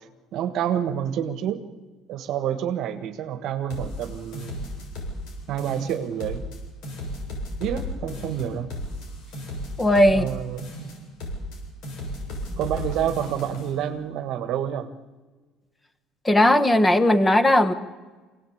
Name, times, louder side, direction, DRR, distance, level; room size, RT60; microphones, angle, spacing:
voice 1, 0.3-1.6 2.1-4.6 5.5-6.4 7.6-8.7 10.1-10.6 12.6-14.9, right 10 dB, 55° right, 9 dB, 1.5 m, -28 dB
sound 1, 3.7-5.3 5.6-6.6 6.8-10.3 10.6-11.6 11.8-13.7, left 1 dB, 60° left, 7.5 m, -34 dB
voice 2, 9.8-10.2 16.2-17.7, left 1 dB, 10° left, 12 dB, 1.2 m, -17 dB
25.5 x 18.0 x 8.7 m, 1.3 s
cardioid pair, 155°, 0 cm